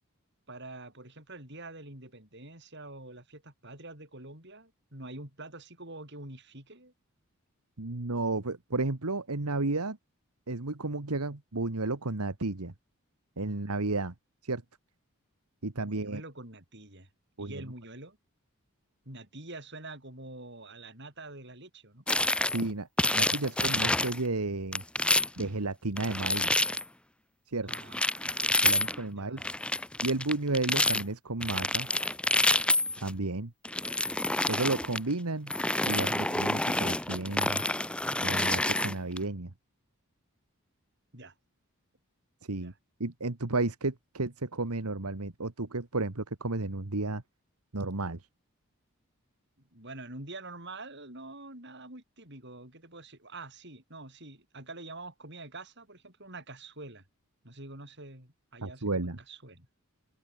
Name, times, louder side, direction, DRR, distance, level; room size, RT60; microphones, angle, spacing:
voice 1, 0.5-6.9 15.8-17.1 17.4-18.2 19.1-22.0 27.6-28.2 29.1-29.6 41.1-41.3 42.5-42.8 49.6-57.0 57.4-59.7, right 2 dB, 50° right, 7.5 m, -46 dB
voice 2, 7.8-10.0 10.5-12.7 13.4-14.1 14.4-14.6 15.6-16.2 17.4-17.6 22.5-22.9 23.1-24.8 25.4-26.5 27.5-27.7 28.6-29.4 30.0-31.9 33.0-33.5 34.5-35.5 35.9-37.6 38.2-39.5 42.5-42.7 43.0-47.2 47.7-48.2 58.6-59.2, right 2 dB, 90° right, 1.6 m, -32 dB
sound 1, 22.1-22.7 23.0-24.2 24.7-25.4 26.0-26.8 27.7-29.0 29.4-31.0 31.4-33.1 33.6-35.0 35.5-39.2, left 2 dB, 5° left, 0.6 m, -28 dB
open air
head